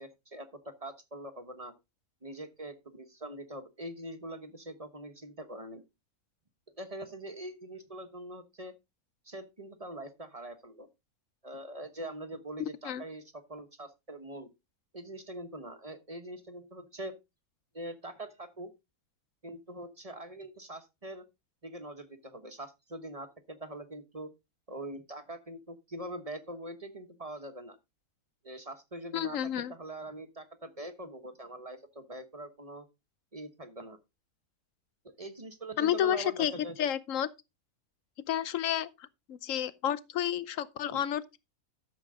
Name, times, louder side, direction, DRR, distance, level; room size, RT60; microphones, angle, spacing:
voice 1, 0.0-1.7 2.2-5.8 6.8-8.7 9.2-10.9 11.4-13.2 13.5-14.5 14.9-17.1 17.7-18.7 19.4-21.2 21.6-24.3 24.7-27.8 28.4-32.9 33.3-34.0 35.0-36.9, right 1 dB, 25° right, 1.1 m, -43 dB
voice 2, 29.1-29.7 35.8-36.5 36.8-37.3 38.3-41.4, left 10 dB, 65° left, 1.1 m, -31 dB
13.0 x 7.3 x 3.7 m
omnidirectional pair, 1.5 m